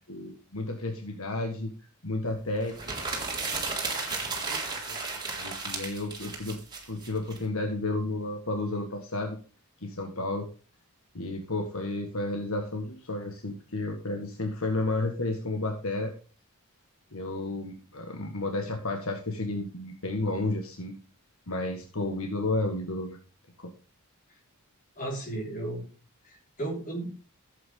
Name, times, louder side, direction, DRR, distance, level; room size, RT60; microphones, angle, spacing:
voice 1, 0.1-1.7 2.0-3.6 4.2-4.6 4.9-5.0 5.3-6.6 6.9-9.4 9.8-10.5 11.1-16.1 17.1-20.9 21.5-23.2 23.6-23.7, left 2 dB, 70° left, 3 dB, 1.7 m, -32 dB
sound 1, 2.7-7.4, right 4 dB, 20° right, 3.7 m, -34 dB
voice 2, 25.0-25.8 26.2-27.1, right 2 dB, 40° left, -1 dB, 5.2 m, -34 dB
15.0 x 8.6 x 3.8 m, 0.37 s
head